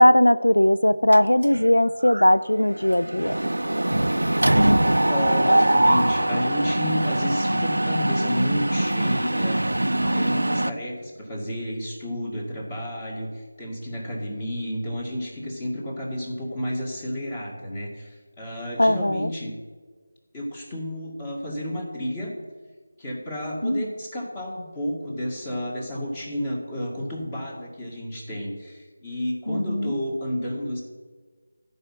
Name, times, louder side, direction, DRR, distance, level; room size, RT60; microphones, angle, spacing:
voice 1, 0.0-3.3 18.8-19.3 23.6-23.9 29.5-29.9, left 1 dB, 90° left, 13 dB, 0.4 m, -19 dB
Mechanisms, 1.1-1.7 2.1-2.3 2.5-10.7, right 1 dB, 80° right, 0.4 m, -22 dB
voice 2, 4.6-9.6 9.9-18.1 18.4-19.5 20.3-22.3 23.0-30.8, equal, 20° left, -1 dB, 2.1 m, -31 dB
12.5 x 5.5 x 7.6 m, 1.5 s
figure-of-eight pair, 165°, 0 cm